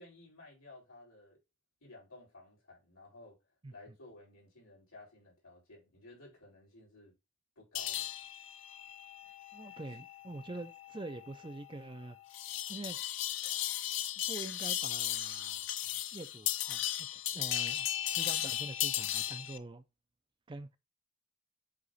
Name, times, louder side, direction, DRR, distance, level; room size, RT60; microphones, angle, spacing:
voice 1, 0.0-1.4 1.8-3.4 3.7-7.1 7.6-8.1, left 2 dB, 85° left, 4.4 m, -55 dB
sound 1, 7.7-19.6, left 12 dB, 60° left, 0.5 m, -36 dB
voice 2, 9.5-12.2 12.7-13.0 14.3-19.8 20.5-20.7, right 2 dB, 25° right, 0.4 m, -45 dB
7.7 x 3.0 x 4.0 m
head